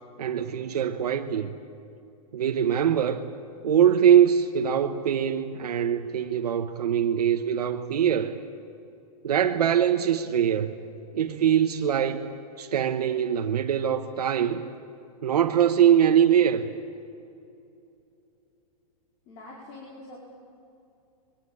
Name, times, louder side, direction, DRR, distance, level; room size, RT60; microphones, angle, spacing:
voice 1, 0.2-1.5 2.3-3.2 3.6-8.4 9.2-10.7 11.1-12.2 12.6-14.6 15.2-16.7, right 9 dB, 85° right, 1.3 m, -22 dB
voice 2, 19.3-20.2, left 2 dB, 35° left, 4.5 m, -44 dB
24.0 x 22.5 x 8.7 m
hypercardioid pair, 150°, 19 cm